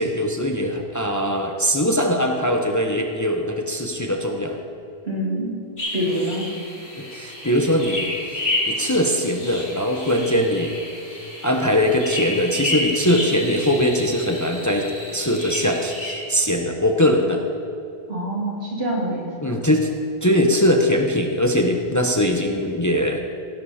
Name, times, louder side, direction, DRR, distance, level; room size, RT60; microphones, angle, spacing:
voice 1, 0.0-4.6 7.0-8.1 8.7-10.8 11.4-14.9 15.1-17.4 19.4-19.9 20.2-23.2, equal, 20° left, 3 dB, 0.8 m, -21 dB
voice 2, 5.0-5.5 5.9-6.5 18.1-19.5, right 1 dB, 80° right, -3 dB, 3.0 m, -25 dB
sound 1, 5.8-16.2, left 1 dB, 85° left, 4.3 m, -30 dB
16.5 x 10.5 x 4.2 m, 2.6 s
omnidirectional pair, 1.0 m